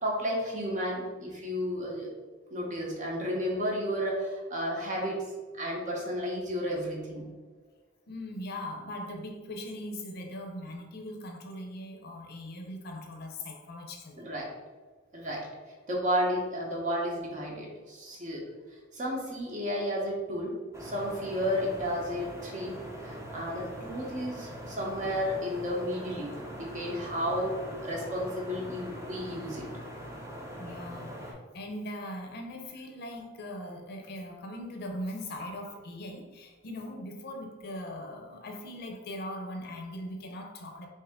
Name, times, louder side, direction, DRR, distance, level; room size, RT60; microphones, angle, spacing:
voice 1, 0.0-2.1 2.5-5.2 5.5-7.3 14.2-14.5 15.1-15.5 15.9-18.4 18.9-20.5 20.8-22.8 23.0-27.5 27.8-29.7, equal, 40° right, -2 dB, 0.9 m, -32 dB
voice 2, 8.1-14.3 30.6-40.9, left 1 dB, 55° left, 2 dB, 0.5 m, -40 dB
sound 1, 20.7-31.3, equal, 15° right, 0.6 m, -42 dB
3.5 x 2.7 x 3.5 m, 1.3 s
head